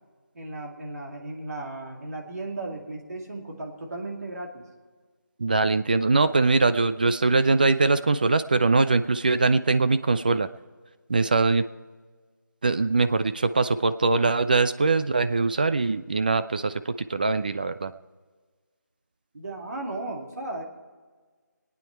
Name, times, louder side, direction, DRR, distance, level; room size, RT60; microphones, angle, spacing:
voice 1, 0.3-4.7 19.3-20.6, right 2 dB, 55° right, 1 dB, 2.4 m, -35 dB
voice 2, 5.4-10.5 11.1-11.7 12.6-17.9, right 3 dB, 25° right, 11 dB, 0.4 m, -22 dB
24.5 x 9.3 x 4.5 m, 1.5 s
figure-of-eight pair, 165°, 10 cm